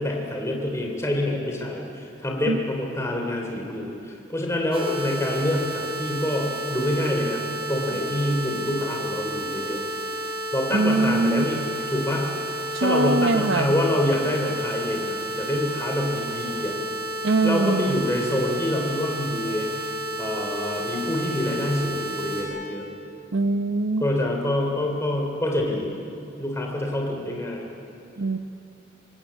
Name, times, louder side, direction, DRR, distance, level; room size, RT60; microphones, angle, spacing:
voice 1, 0.0-7.4 7.7-9.8 10.5-12.4 12.8-16.7 17.4-19.8 20.2-22.9 24.0-26.0 26.4-27.7, left 1 dB, 15° left, 0 dB, 3.1 m, -26 dB
sound 1, 4.7-22.4, right 1 dB, 30° right, 5.4 m, -31 dB
voice 2, 10.7-11.4 12.7-13.8 17.2-18.0 23.3-24.1 28.2-28.4, right 2 dB, 80° right, 11 dB, 0.9 m, -22 dB
23.5 x 20.0 x 8.5 m, 2.7 s
head